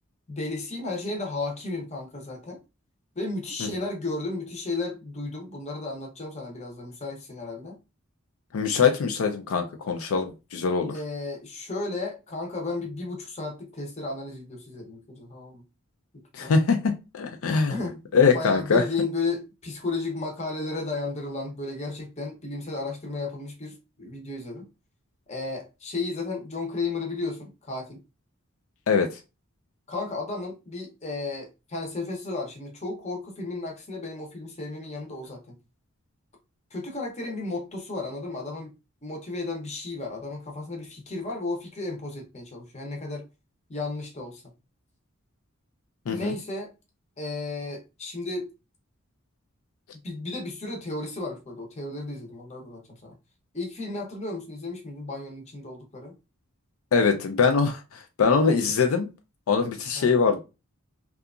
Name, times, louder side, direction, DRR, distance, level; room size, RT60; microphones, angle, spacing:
voice 1, 0.3-2.6 3.2-7.8 10.9-15.6 16.4-16.5 17.7-18.0 18.3-24.7 25.3-28.0 29.9-35.6 36.7-38.7 39.0-43.3 43.7-44.4 46.1-46.7 47.2-48.5 50.0-53.1 53.5-56.1 59.9-60.2, left 3 dB, 30° left, 0.7 m, -33 dB
voice 2, 8.5-10.9 16.3-17.8 18.1-18.8 28.9-29.1 46.1-46.3 56.9-59.1 59.5-60.4, left 5 dB, 75° left, 0.4 m, -23 dB
2.8 x 2.3 x 2.3 m
head